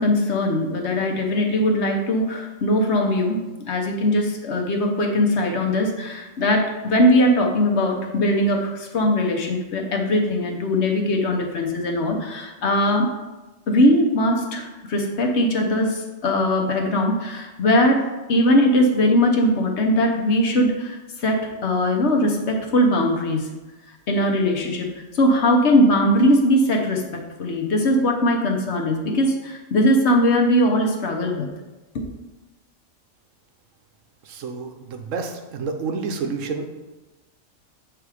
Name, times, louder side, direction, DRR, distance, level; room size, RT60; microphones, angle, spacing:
voice 1, 0.0-3.4 3.6-13.1 13.7-18.0 18.3-23.5 24.1-31.5 31.9-32.1, left 1 dB, 60° left, 2 dB, 1.1 m, -20 dB
voice 2, 34.3-36.7, right 4 dB, 70° right, 5 dB, 1.0 m, -29 dB
6.9 x 3.5 x 4.8 m, 1.1 s
omnidirectional pair, 1.4 m